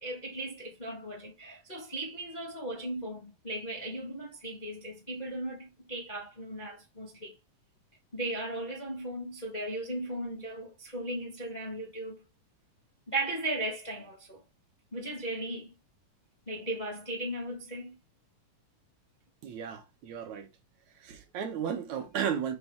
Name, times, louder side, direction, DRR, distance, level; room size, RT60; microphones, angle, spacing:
voice 1, 0.0-7.4 8.1-12.2 13.1-14.4 14.9-15.7 16.5-17.9, right 1 dB, 25° left, 1.0 m, -37 dB
voice 2, 19.4-20.5 21.0-22.6, right 8 dB, 70° right, 2.2 m, -34 dB
5.9 x 5.3 x 3.5 m
omnidirectional pair, 3.7 m